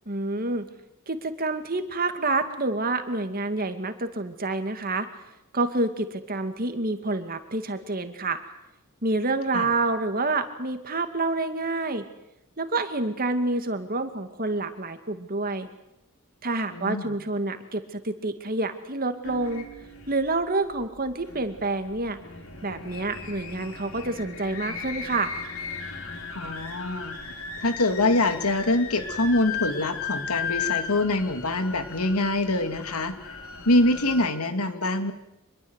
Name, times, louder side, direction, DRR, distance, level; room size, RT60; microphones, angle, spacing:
voice 1, 0.1-0.7 1.1-5.1 5.5-8.4 9.0-12.1 12.6-15.7 16.4-19.7 20.1-22.2 22.6-25.3, right 2 dB, 40° right, 8 dB, 2.3 m, -28 dB
voice 2, 16.7-17.1 26.3-33.2 33.6-35.1, left 2 dB, 85° left, 8 dB, 2.7 m, -25 dB
sound 1, 19.2-34.3, left 6 dB, 70° left, 4.2 m, -36 dB
26.5 x 21.5 x 8.2 m, 0.87 s
head